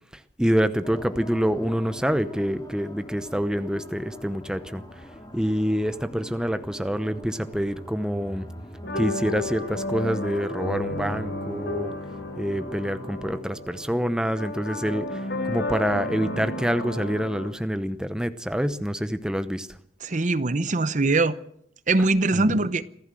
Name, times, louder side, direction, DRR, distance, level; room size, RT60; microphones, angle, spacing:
voice 1, 0.1-5.0 5.3-8.5 8.9-11.9 12.4-19.8 22.2-22.7, equal, 5° right, 0.8 m, -27 dB
sound 1, 0.8-13.4, left 1 dB, 20° left, 2.2 m, -43 dB
sound 2, 8.8-17.5, left 2 dB, 60° left, 3.5 m, -32 dB
voice 2, 20.0-21.4 21.9-22.9, right 2 dB, 40° right, 0.8 m, -22 dB
26.5 x 15.0 x 7.6 m
head